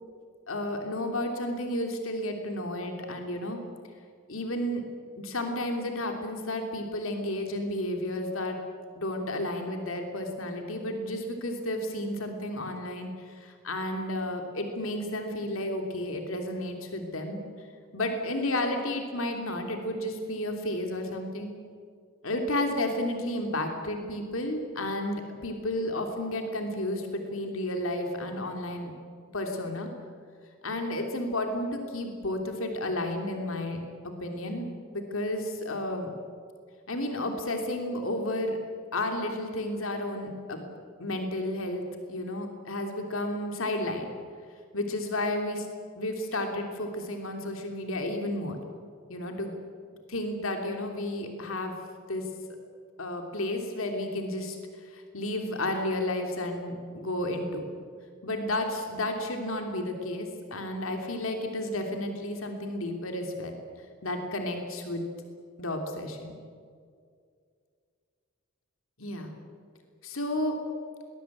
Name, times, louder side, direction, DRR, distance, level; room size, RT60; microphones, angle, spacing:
voice 1, 0.5-3.6 4.3-4.8 5.2-8.6 8.9-17.4 17.9-21.5 22.2-29.0 29.3-29.9 30.6-34.7 34.9-36.1 36.9-38.6 38.9-40.6 41.0-44.2 44.7-45.7 46.0-48.6 49.1-49.5 50.1-51.7 52.1-52.3 53.0-57.6 58.2-63.5 64.0-65.0 65.6-66.4 69.0-69.3 70.0-70.6, left 1 dB, 65° left, 4 dB, 3.0 m, -32 dB
21.5 x 20.5 x 8.6 m, 2.2 s
head